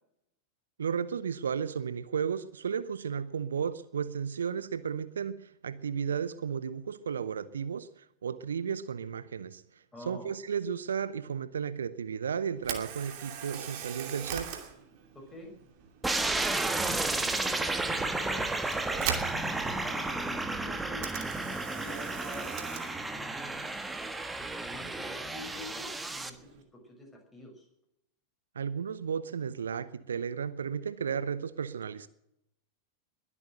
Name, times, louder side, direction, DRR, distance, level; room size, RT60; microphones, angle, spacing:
voice 1, 0.8-9.6 10.1-14.6 28.5-32.1, right 7 dB, 70° right, 0.7 m, -34 dB
voice 2, 9.9-10.3 15.1-15.5 16.6-18.5 18.7-21.2 21.7-22.9 24.7-27.7, left 2 dB, 5° left, 6.3 m, -47 dB
Camera, 12.6-26.6, right 8 dB, 45° right, 2.7 m, -43 dB
sound 1, 16.0-26.3, right 2 dB, 10° right, 1.4 m, -32 dB
21.5 x 8.5 x 7.8 m
figure-of-eight pair, 90°, 0 cm